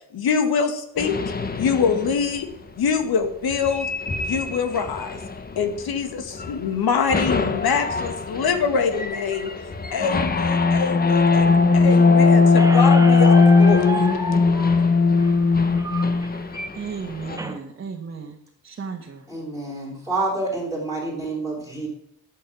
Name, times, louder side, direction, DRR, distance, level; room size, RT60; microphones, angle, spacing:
voice 1, 0.1-1.2 1.6-2.5 2.8-3.9 4.2-5.2 5.6-9.5 9.9-14.1, left 6 dB, 85° left, 7 dB, 2.0 m, -24 dB
sound 1, 1.0-2.3 3.5-6.0 6.3-6.7 7.1-17.4, left 4 dB, 25° left, 1.0 m, -19 dB
Squeak, 12.6-17.6, right 2 dB, 10° right, 1.0 m, -32 dB
voice 2, 16.8-18.3 18.6-19.2, right 5 dB, 35° right, 0 dB, 1.5 m, -34 dB
voice 3, 19.3-21.9, right 2 dB, 10° left, -2 dB, 3.6 m, -28 dB
13.0 x 8.6 x 7.3 m, 0.74 s
wide cardioid pair, 155°, 36 cm